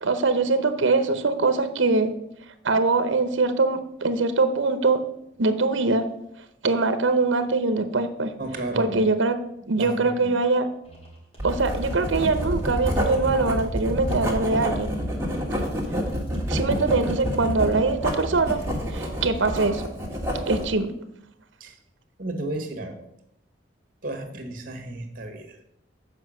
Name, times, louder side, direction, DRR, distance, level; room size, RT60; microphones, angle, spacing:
voice 1, 0.0-2.1 2.6-5.0 5.4-6.1 6.6-8.3 8.8-9.4 9.7-10.7 11.4-14.9 16.5-18.6 18.9-19.8 20.5-20.9, right 3 dB, 80° right, 10 dB, 0.8 m, -22 dB
voice 2, 8.4-9.1 9.6-10.4 21.6-21.8 22.2-23.1 24.0-25.6, right 1 dB, 45° right, 6 dB, 1.5 m, -33 dB
sound 1, 10.8-18.9, right 2 dB, 30° left, 2.6 m, -46 dB
Writing, 11.4-20.7, equal, 15° right, 1.7 m, -28 dB
7.8 x 5.0 x 6.3 m, 0.78 s
head